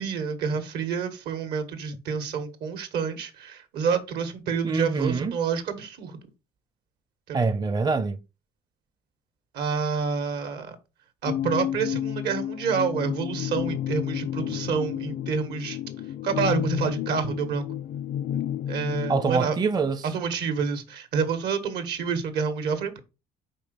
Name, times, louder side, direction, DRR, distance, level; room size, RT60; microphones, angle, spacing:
voice 1, 0.0-6.2 7.3-7.4 9.5-10.8 11.2-15.8 16.2-17.6 18.7-19.5 20.1-23.0, right 6 dB, 75° right, 1.6 m, -28 dB
voice 2, 4.6-5.4 7.3-8.2 19.1-20.1, right 4 dB, 25° right, 0.5 m, -25 dB
sound 1, 11.3-19.4, left 11 dB, 50° left, 0.4 m, -31 dB
5.3 x 4.1 x 5.2 m
cardioid pair, 110°, 17 cm